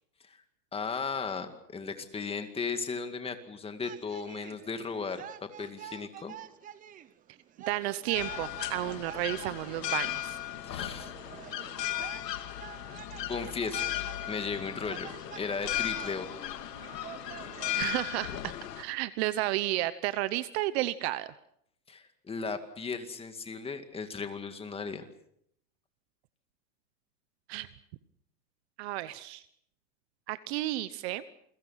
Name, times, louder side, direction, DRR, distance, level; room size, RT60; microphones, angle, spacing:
voice 1, 0.7-5.2 5.6-6.3 10.6-11.1 13.3-13.8 14.3-15.1 15.4-16.4 21.9-25.1, left 5 dB, 10° left, 8 dB, 2.1 m, -36 dB
sound 1, 3.8-17.8, right 10 dB, 15° right, 0.8 m, -48 dB
voice 2, 7.7-10.4 17.7-21.3 27.5-27.7 28.8-29.4 30.3-31.2, right 16 dB, 40° right, 15 dB, 1.0 m, -32 dB
sound 2, 8.1-18.8, left 13 dB, 75° left, 2.5 m, -36 dB
29.0 x 23.0 x 5.8 m, 0.71 s
hypercardioid pair, 140°, 49 cm